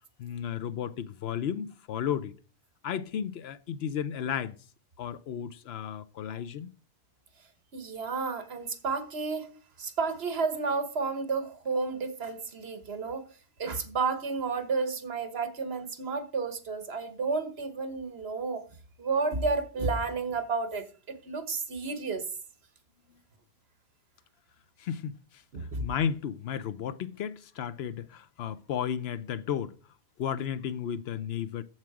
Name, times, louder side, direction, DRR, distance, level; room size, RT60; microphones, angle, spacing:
voice 1, 0.2-2.3 2.8-4.6 5.0-6.7 24.8-25.2 25.6-29.7 30.2-31.6, left 8 dB, 75° left, 0.9 m, -33 dB
voice 2, 7.7-9.5 9.8-13.2 13.6-18.6 19.0-22.3 25.5-25.8, right 4 dB, 70° right, 1.4 m, -31 dB
7.5 x 7.4 x 4.8 m
omnidirectional pair, 1.1 m